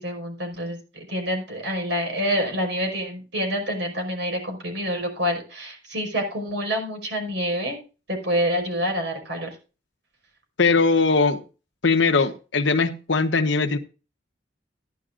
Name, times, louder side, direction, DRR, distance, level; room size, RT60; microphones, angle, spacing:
voice 1, 0.0-7.8 8.1-9.5, equal, 70° right, 5.5 m, -27 dB
voice 2, 10.6-11.4 11.8-13.8, left 4 dB, 80° left, 1.0 m, -20 dB
15.0 x 11.0 x 2.5 m
head